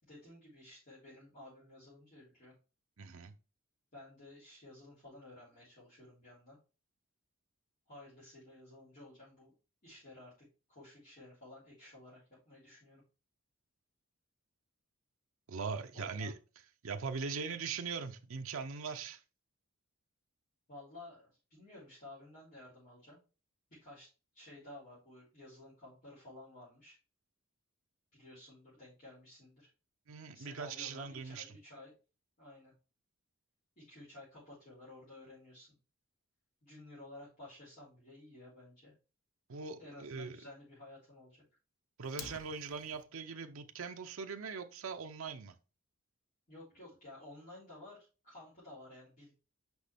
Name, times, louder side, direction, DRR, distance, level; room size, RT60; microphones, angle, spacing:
voice 1, 0.0-2.5 3.9-6.6 7.9-9.5 9.8-13.0 15.9-16.3 17.5-17.6 20.7-23.2 23.7-24.1 24.3-27.0 28.1-29.7 30.3-31.9 32.4-32.7 33.8-35.7 36.6-38.9 39.8-41.4 46.5-49.3, left 1 dB, 40° left, 3.6 m, -54 dB
voice 2, 3.0-3.3 15.5-16.4 16.8-19.2 30.1-31.5 39.5-40.4 42.0-45.5, right 5 dB, 65° right, 0.6 m, -41 dB
Fire, 42.0-43.0, left 7 dB, 80° left, 0.7 m, -49 dB
6.2 x 5.4 x 3.4 m
head